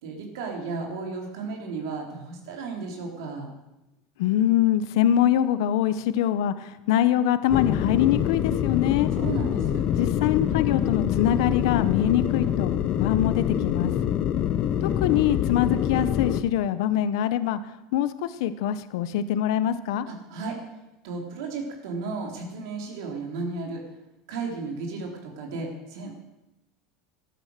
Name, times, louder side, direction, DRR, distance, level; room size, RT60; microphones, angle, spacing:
voice 1, 0.0-3.5 9.1-9.9 20.1-20.6 21.0-23.8 24.3-26.1, right 4 dB, 85° right, 1 dB, 3.9 m, -34 dB
voice 2, 4.2-9.1 10.0-12.7 13.0-13.9 14.8-20.1, left 11 dB, 80° left, 13 dB, 0.8 m, -24 dB
sound 1, 7.5-16.4, left 10 dB, 40° left, 0.8 m, -25 dB
14.5 x 12.0 x 6.6 m, 0.95 s
supercardioid pair, 155°, 2 cm